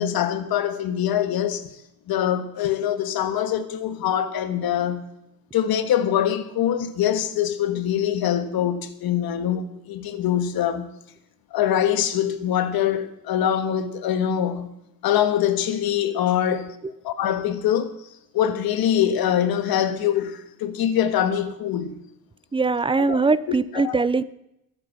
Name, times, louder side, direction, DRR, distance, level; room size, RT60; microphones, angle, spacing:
voice 1, 0.0-1.7 2.1-5.1 5.5-10.9 11.5-14.7 15.0-16.8 17.0-17.9 18.3-22.0 23.0-23.2 23.5-24.0, left 10 dB, 85° left, 1.6 m, -24 dB
voice 2, 22.5-24.2, right 4 dB, 15° right, 0.5 m, -21 dB
22.0 x 8.4 x 6.0 m
cardioid pair, 155°, 35 cm